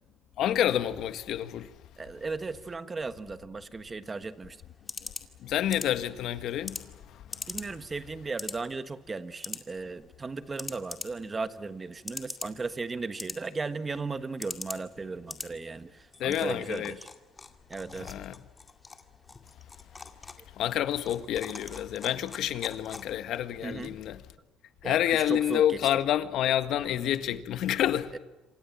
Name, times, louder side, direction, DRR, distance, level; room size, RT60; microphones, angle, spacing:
voice 1, 0.4-1.7 5.4-6.8 16.2-16.9 18.0-18.3 20.6-24.2 24.8-28.1, left 11 dB, 60° left, 1.8 m, -28 dB
voice 2, 2.0-4.6 7.5-17.1 17.7-18.3 21.5-21.6 23.6-24.0 24.8-25.8 26.6-27.0 28.1-28.2, right 4 dB, 20° right, 1.4 m, -36 dB
sound 1, 4.0-23.4, left 3 dB, 20° left, 2.2 m, -44 dB
27.0 x 26.5 x 7.4 m
cardioid pair, 125°, 0 cm